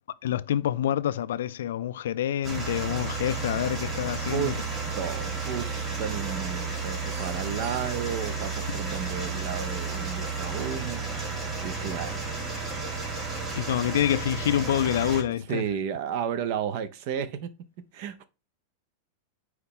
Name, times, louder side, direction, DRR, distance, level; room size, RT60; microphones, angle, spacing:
voice 1, 0.2-4.5 13.6-15.6, left 11 dB, 60° left, 0.4 m, -27 dB
sound 1, 2.4-15.2, right 4 dB, 25° right, 2.9 m, -32 dB
voice 2, 4.3-4.7 5.0-12.3 15.5-17.5 17.9-18.2, right 8 dB, 45° right, 0.8 m, -33 dB
9.3 x 3.1 x 3.7 m
figure-of-eight pair, 90°, 0 cm